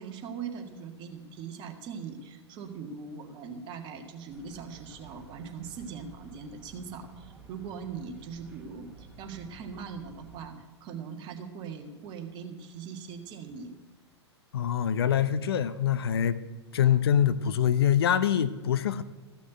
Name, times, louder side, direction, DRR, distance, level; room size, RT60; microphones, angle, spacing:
voice 1, 0.0-10.5 10.8-13.7 16.8-17.0, right 6 dB, 35° right, 4 dB, 1.8 m, -41 dB
sound 1, 4.3-10.5, right 3 dB, 5° right, 3.4 m, -52 dB
voice 2, 14.5-16.4 16.7-19.0, left 9 dB, 60° left, 13 dB, 0.7 m, -24 dB
14.5 x 6.3 x 7.9 m, 1.3 s
figure-of-eight pair, 100°, 14 cm